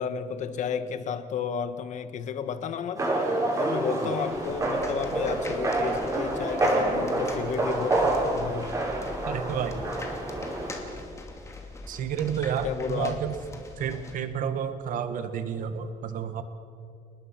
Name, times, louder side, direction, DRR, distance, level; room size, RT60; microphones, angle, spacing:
voice 1, 0.0-3.0 3.6-8.7 12.6-13.2, left 7 dB, 55° left, 11 dB, 1.4 m, -32 dB
sound 1, 3.0-10.8, right 2 dB, 20° right, 7.4 m, -28 dB
sound 2, 4.3-14.1, left 2 dB, 20° left, 2.6 m, -41 dB
voice 2, 9.3-9.9 11.9-13.4 13.8-16.4, right 7 dB, 65° right, 9 dB, 1.7 m, -30 dB
29.5 x 20.0 x 6.1 m, 2.4 s
cardioid pair, 165°, 15 cm